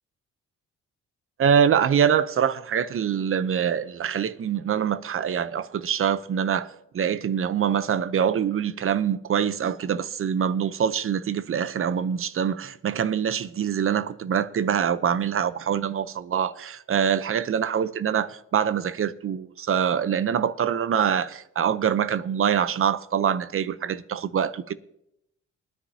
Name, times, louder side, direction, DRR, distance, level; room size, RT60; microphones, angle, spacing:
voice 1, 1.4-24.7, right 8 dB, 45° right, 0.7 m, -24 dB
21.0 x 10.0 x 2.8 m
cardioid pair, 90°, 30 cm